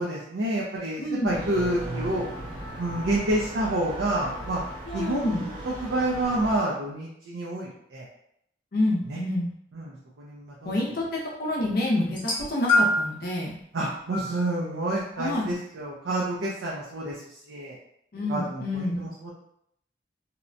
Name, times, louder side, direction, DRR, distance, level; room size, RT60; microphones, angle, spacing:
voice 1, 0.0-2.3 2.8-4.6 4.9-8.1 9.1-9.2 9.7-10.8 13.7-17.2 17.5-17.8 18.3-19.3, right 1 dB, 85° right, -4 dB, 0.5 m, -29 dB
voice 2, 1.0-1.4 4.9-5.5 8.7-9.5 10.6-13.6 15.2-15.5 18.1-19.0, left 1 dB, 55° left, -3 dB, 0.5 m, -28 dB
sound 1, 1.3-6.6, right 1 dB, 25° right, 0.5 m, -37 dB
sound 2, 12.1-13.2 14.1-14.3 15.3-15.4, left 1 dB, 30° left, 0.8 m, -24 dB
2.8 x 2.1 x 2.5 m, 0.73 s
head